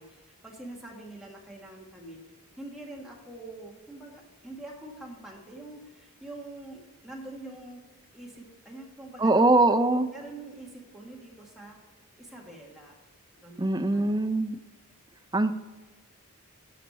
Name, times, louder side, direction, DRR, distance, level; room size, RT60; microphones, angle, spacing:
voice 1, 0.0-2.2 2.6-7.8 8.1-9.6 9.9-11.8 12.2-12.9 13.4-14.0, right 2 dB, ahead, -3 dB, 1.6 m, -45 dB
voice 2, 9.2-10.1 13.6-14.6 15.3-15.5, right 2 dB, 15° right, 8 dB, 0.5 m, -22 dB
13.0 x 5.8 x 4.2 m, 1.2 s
head